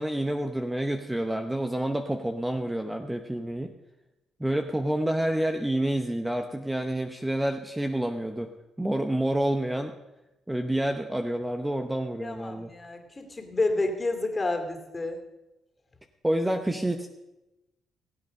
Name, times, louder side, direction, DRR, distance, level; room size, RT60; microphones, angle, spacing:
voice 1, 0.0-3.7 4.4-8.5 8.8-9.9 10.5-12.7 16.2-17.1, right 1 dB, 10° right, 5 dB, 0.9 m, -28 dB
voice 2, 12.2-15.2, left 2 dB, 25° left, 4 dB, 2.6 m, -30 dB
19.0 x 8.3 x 5.3 m, 0.99 s
cardioid pair, 90°, 0 cm